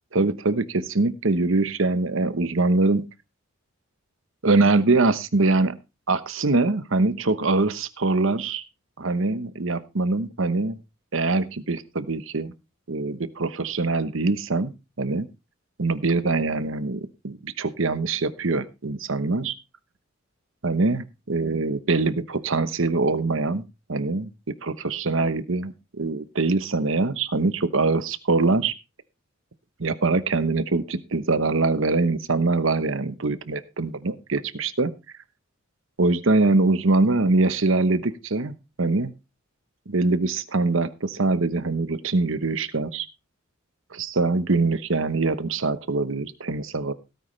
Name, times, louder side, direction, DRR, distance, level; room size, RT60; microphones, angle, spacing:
voice 1, 0.1-3.1 4.4-5.8 6.1-8.6 9.0-10.8 11.1-12.5 12.9-14.7 15.0-15.3 15.8-19.5 20.6-24.3 24.6-28.7 29.8-34.9 36.0-39.1 39.9-43.1 43.9-46.9, right 3 dB, 65° right, 13 dB, 1.0 m, -23 dB
17.0 x 9.4 x 3.3 m, 0.28 s
head